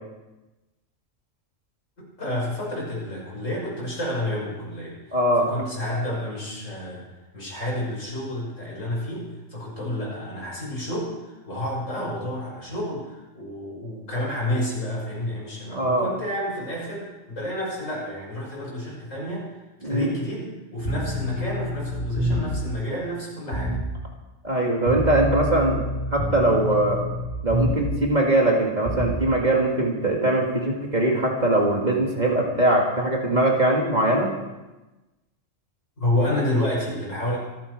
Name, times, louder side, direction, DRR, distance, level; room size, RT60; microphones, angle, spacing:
voice 1, 2.2-7.0 7.3-19.5 19.8-23.8 36.0-37.4, left 1 dB, 75° left, -5 dB, 6.6 m, -30 dB
voice 2, 5.1-5.5 15.7-16.1 19.8-20.1 24.4-27.0 27.4-34.3, right 1 dB, 35° right, 0 dB, 2.1 m, -21 dB
sound 1, 20.8-22.7 23.5-23.9 24.9-28.0 28.8-29.2, left 1 dB, 55° left, 3.0 m, -27 dB
26.0 x 9.1 x 4.8 m, 1.1 s
omnidirectional pair, 1.3 m